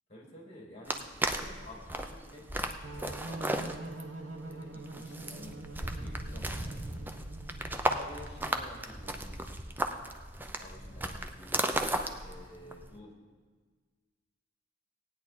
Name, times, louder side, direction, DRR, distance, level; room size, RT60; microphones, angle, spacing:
voice 1, 0.1-3.7 4.4-7.1 7.7-9.3 10.6-11.7 12.2-13.1, left 1 dB, 35° left, -1 dB, 2.6 m, -51 dB
sound 1, 0.9-13.0, right 1 dB, 10° right, 0.5 m, -35 dB
sound 2, 2.8-8.3, right 2 dB, 80° right, 0.9 m, -44 dB
16.0 x 9.2 x 4.3 m, 1.5 s
head